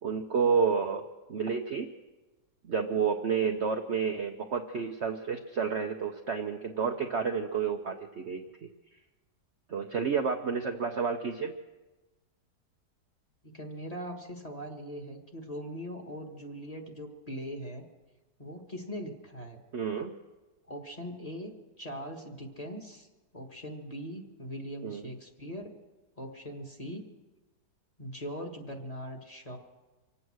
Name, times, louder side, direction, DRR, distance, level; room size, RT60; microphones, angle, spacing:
voice 1, 0.0-1.0 1.3-1.9 2.6-8.4 9.7-11.5 19.7-20.1 24.8-25.0, right 6 dB, 50° right, 4 dB, 0.8 m, -30 dB
voice 2, 13.4-17.8 18.4-19.6 20.7-23.1 23.3-25.8 26.2-27.0 28.0-29.6, equal, 20° left, 2 dB, 1.7 m, -41 dB
25.5 x 8.7 x 6.3 m, 1.2 s
omnidirectional pair, 1.8 m